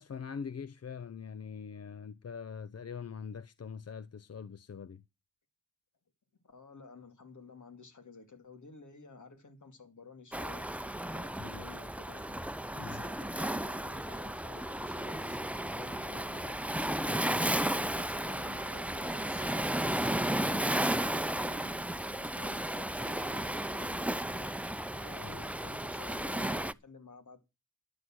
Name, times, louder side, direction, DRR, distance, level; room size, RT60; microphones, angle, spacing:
voice 1, 0.0-5.0 11.4-11.6 12.7-13.0 25.2-25.3, left 6 dB, 55° left, 0.7 m, -43 dB
voice 2, 6.4-10.7 11.1-12.5 12.8-16.6 17.0-21.9 22.2-24.6 24.9-27.4, left 4 dB, 75° left, 2.7 m, -53 dB
Waves surf, 10.3-26.7, right 1 dB, 5° right, 0.7 m, -34 dB
11.5 x 9.5 x 6.1 m
cardioid pair, 50°, 30 cm